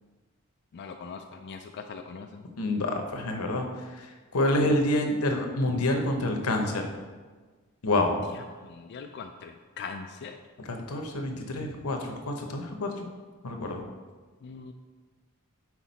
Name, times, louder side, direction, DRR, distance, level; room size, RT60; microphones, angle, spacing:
voice 1, 0.7-2.4 8.6-10.4 14.4-14.7, left 5 dB, 50° left, 4 dB, 0.3 m, -41 dB
voice 2, 2.6-3.7 4.0-4.1 4.3-6.9 7.8-8.2 10.6-13.1 13.4-13.8, left 1 dB, 90° left, 3 dB, 0.8 m, -27 dB
5.9 x 4.8 x 4.0 m, 1.4 s
head